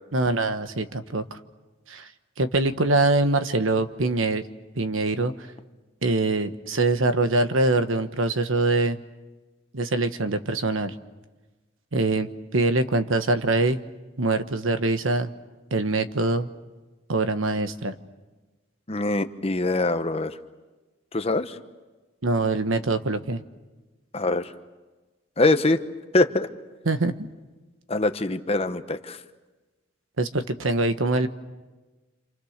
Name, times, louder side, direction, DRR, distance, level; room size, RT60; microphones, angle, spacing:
voice 1, 0.1-1.4 1.9-2.1 2.4-4.4 4.7-5.3 6.0-9.0 9.7-10.9 11.9-13.8 14.2-15.3 15.7-16.5 17.1-17.9 22.2-23.4 26.8-27.3 30.2-31.3, right 2 dB, 80° right, 10 dB, 1.2 m, -24 dB
voice 2, 18.9-20.4 21.1-21.6 24.1-24.5 25.4-25.8 26.1-26.5 27.9-29.2, left 2 dB, 30° left, 9 dB, 1.0 m, -23 dB
28.0 x 28.0 x 6.6 m, 1.2 s
head